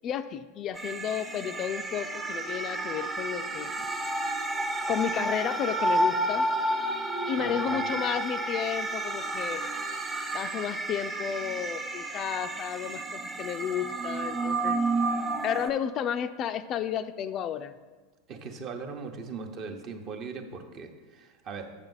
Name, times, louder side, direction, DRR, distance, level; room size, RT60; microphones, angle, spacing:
voice 1, 0.0-3.9 4.9-6.5 7.3-9.6 10.3-14.8 15.4-17.7, left 9 dB, 40° left, 11 dB, 0.3 m, -32 dB
sound 1, 0.8-15.7, right 2 dB, 15° right, 0.9 m, -31 dB
voice 2, 7.4-7.8 18.3-21.7, right 5 dB, 45° right, 5 dB, 0.9 m, -39 dB
7.1 x 6.5 x 3.9 m, 1.3 s
hypercardioid pair, 90°, 0 cm